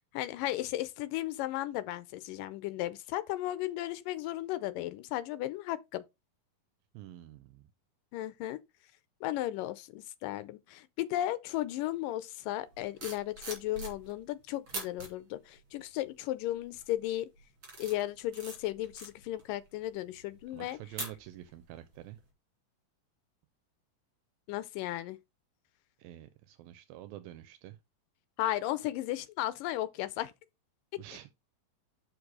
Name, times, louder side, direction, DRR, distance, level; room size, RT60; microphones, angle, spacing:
voice 1, 0.1-6.0 8.1-8.6 9.2-17.3 17.8-20.8 24.5-25.2 28.4-30.3, left 14 dB, 80° left, 2.1 m, -35 dB
voice 2, 6.9-7.7 20.5-22.2 26.0-27.8 31.0-31.3, right 14 dB, 85° right, 2.4 m, -48 dB
sound 1, 12.7-14.3 14.7-15.1 15.7-16.1 16.6-16.9 17.4-21.6 21.9-22.2, right 2 dB, 35° right, 3.0 m, -44 dB
6.4 x 5.2 x 4.7 m
omnidirectional pair, 4.1 m